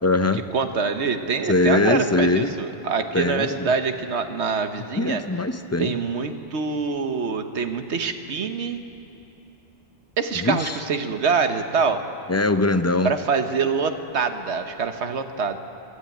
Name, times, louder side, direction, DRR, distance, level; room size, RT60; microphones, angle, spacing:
voice 1, 0.0-0.4 1.5-2.5 3.1-3.7 5.0-6.0 10.3-10.8 12.3-13.1, left 2 dB, 20° left, 9 dB, 0.4 m, -22 dB
voice 2, 0.5-5.2 5.8-8.8 10.2-12.0 13.0-15.6, right 5 dB, 90° right, 7 dB, 1.4 m, -25 dB
22.0 x 13.0 x 9.2 m, 3.0 s
omnidirectional pair, 1.1 m